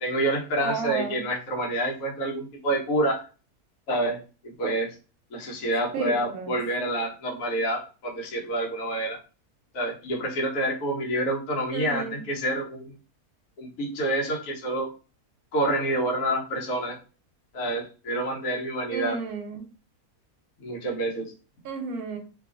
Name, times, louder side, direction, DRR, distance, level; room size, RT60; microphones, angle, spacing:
voice 1, 0.0-3.3 3.9-5.0 5.3-9.2 9.7-12.9 13.6-14.9 15.5-17.0 17.5-19.2 20.6-21.3, right 1 dB, 65° left, -1 dB, 1.1 m, -28 dB
voice 2, 0.6-1.2 5.9-6.6 11.7-12.2 18.9-19.6 21.6-22.2, right 4 dB, 85° right, 4 dB, 1.1 m, -32 dB
2.7 x 2.4 x 2.4 m, 0.35 s
omnidirectional pair, 1.6 m